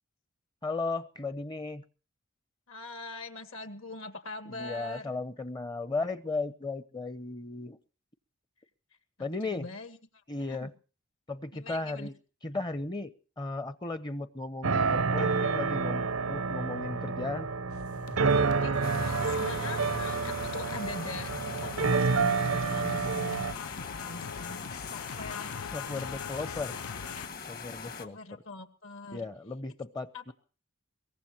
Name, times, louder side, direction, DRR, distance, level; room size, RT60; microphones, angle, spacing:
voice 1, 0.6-1.8 4.5-7.8 9.2-9.7 10.3-10.7 11.3-12.1 12.4-17.5 25.7-26.8 27.5-28.4 29.1-30.3, left 3 dB, 20° left, 14 dB, 0.7 m, -36 dB
voice 2, 2.7-5.1 9.2-10.0 10.5-10.7 11.5-12.1 18.6-25.5 26.3-26.5 27.6-29.2 30.1-30.2, left 2 dB, 70° left, 8 dB, 2.3 m, -43 dB
sound 1, 14.6-23.5, right 4 dB, 90° right, 0.8 m, -29 dB
sound 2, 17.7-27.3, left 6 dB, 90° left, 0.7 m, -42 dB
sound 3, 18.8-28.1, left 5 dB, 45° left, 1.3 m, -42 dB
22.5 x 18.0 x 3.0 m, 0.38 s
head